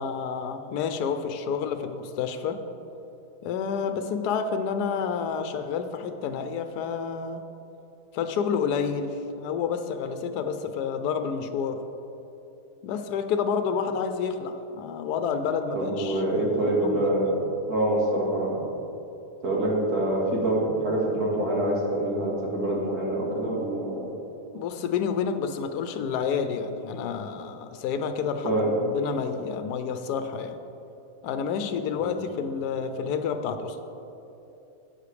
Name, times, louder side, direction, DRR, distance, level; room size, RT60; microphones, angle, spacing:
voice 1, 0.0-2.6 3.4-7.4 8.1-11.8 12.8-17.1 24.5-30.6 31.2-33.8, left 6 dB, 80° left, 8 dB, 1.1 m, -29 dB
voice 2, 15.7-18.7 19.4-24.1 28.4-28.7 31.9-32.2, right 1 dB, 70° right, -4 dB, 2.3 m, -26 dB
11.5 x 8.2 x 3.3 m, 2.9 s
omnidirectional pair, 1.7 m